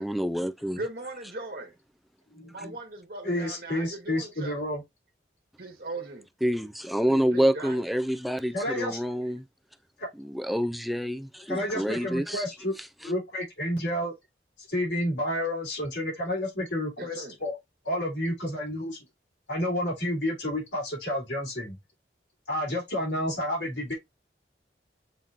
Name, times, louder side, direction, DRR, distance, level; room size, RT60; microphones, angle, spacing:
voice 1, 0.0-0.8 2.6-2.7 6.4-9.4 10.2-12.4 13.0-13.1, equal, ahead, 0.3 m, -27 dB
voice 2, 0.7-1.7 2.5-4.6 5.6-6.3 7.1-7.8 17.0-17.3, right 2 dB, 55° right, 1.3 m, -39 dB
voice 3, 2.3-2.7 3.2-4.8 8.5-9.0 10.0-10.1 11.5-12.7 13.0-14.1 14.7-17.6 17.9-19.0 19.5-21.8 22.5-23.9, left 1 dB, 85° left, 3.4 m, -30 dB
7.3 x 2.9 x 2.5 m
head